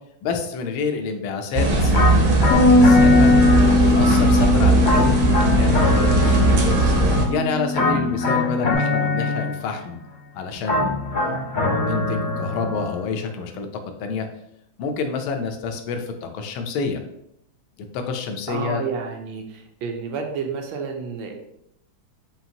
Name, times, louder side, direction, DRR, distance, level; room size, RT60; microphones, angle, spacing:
voice 1, 0.2-3.3 3.6-6.8 7.3-10.0 10.3-13.7 14.0-14.3 14.8-17.0 17.9-18.8, left 5 dB, 85° left, 5 dB, 1.4 m, -28 dB
sound 1, 1.5-7.2, right 2 dB, 60° right, 0.9 m, -18 dB
sound 2, 1.9-4.0 4.8-7.2 7.7-9.8 10.6-13.0, left 2 dB, 45° left, 0.6 m, -24 dB
Bass guitar, 2.5-8.8, left 2 dB, 70° left, 1.0 m, -20 dB
voice 2, 18.5-21.3, right 6 dB, 80° right, 2 dB, 1.4 m, -30 dB
5.6 x 2.5 x 2.7 m, 0.77 s
omnidirectional pair, 2.2 m